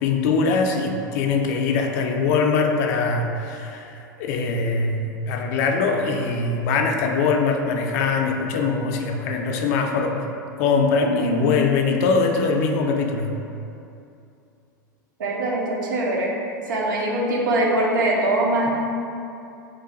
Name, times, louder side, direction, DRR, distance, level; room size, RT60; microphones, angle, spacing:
voice 1, 0.0-10.2 10.6-13.4, left 4 dB, 55° left, 3 dB, 0.3 m, -22 dB
voice 2, 11.0-11.5 15.2-16.3 16.7-18.7, right 1 dB, 75° right, -2 dB, 0.6 m, -22 dB
3.0 x 2.2 x 3.7 m, 2.6 s
hypercardioid pair, 90°, 11 cm